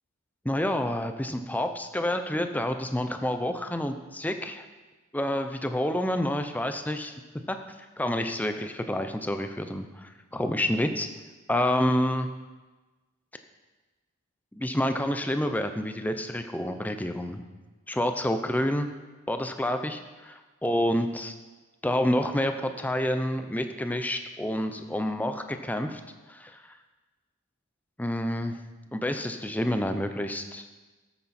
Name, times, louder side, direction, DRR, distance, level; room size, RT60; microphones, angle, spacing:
voice 1, 0.4-4.6 5.1-7.1 7.5-7.6 8.0-11.1 11.5-12.3 14.5-17.4 17.9-18.9 19.3-21.3 21.8-26.0 26.3-26.7 28.0-28.6 28.9-30.6, left 1 dB, 10° left, 7 dB, 0.6 m, -28 dB
13.5 x 8.7 x 4.3 m, 1.2 s
head